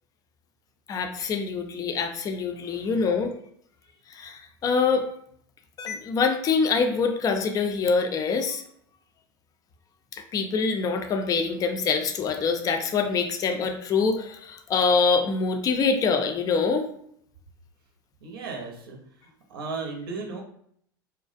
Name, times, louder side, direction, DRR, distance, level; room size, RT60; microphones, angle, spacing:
voice 1, 0.9-3.3 4.1-5.1 5.8-8.6 10.3-16.9, left 5 dB, 30° left, 5 dB, 0.4 m, -25 dB
voice 2, 18.2-19.0 19.5-20.4, right 4 dB, 80° right, 1 dB, 0.7 m, -35 dB
2.4 x 2.1 x 2.5 m, 0.67 s
hypercardioid pair, 80°, 12 cm